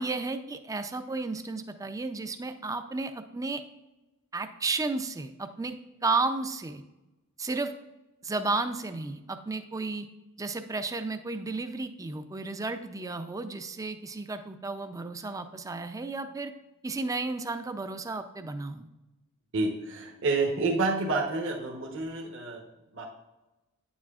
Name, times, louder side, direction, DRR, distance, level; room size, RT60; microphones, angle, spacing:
voice 1, 0.0-3.6 4.3-5.7 6.0-6.8 7.4-7.7 8.2-10.1 10.4-16.5 16.8-18.9, right 3 dB, 15° right, 8 dB, 0.4 m, -33 dB
voice 2, 19.5-22.7 22.9-23.1, right 3 dB, 60° right, 0 dB, 1.0 m, -29 dB
9.2 x 7.3 x 2.4 m, 1.0 s
head